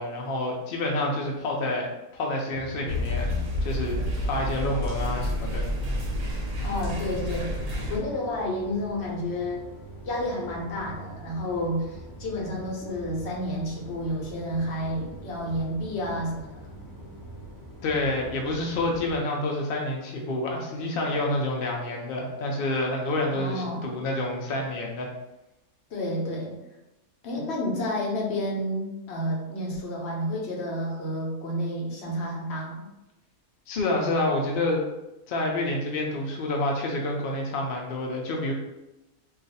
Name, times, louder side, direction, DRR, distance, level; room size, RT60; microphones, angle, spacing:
voice 1, 0.0-3.3 3.6-5.7 17.8-25.1 33.7-34.8 35.3-38.5, left 2 dB, 75° left, -1 dB, 0.5 m, -28 dB
sound 1, 2.5-19.2, right 1 dB, 20° left, 0.9 m, -44 dB
sound 2, 2.9-8.0, left 1 dB, 50° right, 0.8 m, -29 dB
voice 2, 6.6-7.6 7.9-9.6 10.0-16.6 23.3-23.9 25.9-26.5 27.2-32.9, left 1 dB, 55° left, -2 dB, 0.9 m, -30 dB
2.4 x 2.4 x 4.0 m, 0.95 s
omnidirectional pair, 1.6 m